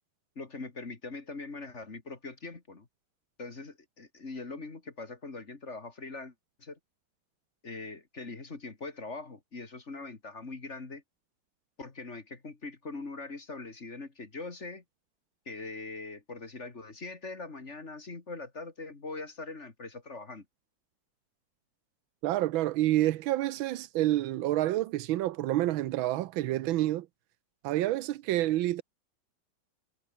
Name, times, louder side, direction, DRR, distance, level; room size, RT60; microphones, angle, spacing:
voice 1, 0.4-2.9 3.4-6.3 6.6-6.8 7.6-11.0 11.8-14.8 15.5-20.5, left 3 dB, 35° left, 2.7 m, -42 dB
voice 2, 22.2-27.1 27.6-28.8, right 15 dB, 90° right, 1.5 m, -28 dB
omnidirectional pair, 2.1 m